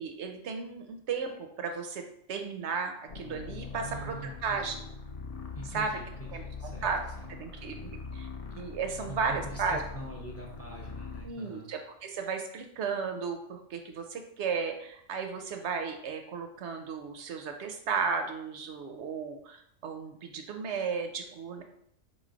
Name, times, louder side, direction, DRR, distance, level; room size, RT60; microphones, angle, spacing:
voice 1, 0.0-2.0 2.3-4.9 5.7-6.0 6.3-7.0 7.4-8.3 8.5-9.8 11.2-21.6, right 5 dB, 65° right, 5 dB, 0.8 m, -34 dB
sound 1, 3.1-11.3, left 4 dB, 75° left, 0.3 m, -42 dB
voice 2, 3.8-4.7 5.5-6.9 9.1-11.7, right 2 dB, 15° left, -3 dB, 0.6 m, -44 dB
4.0 x 3.1 x 3.8 m, 0.71 s
omnidirectional pair, 1.4 m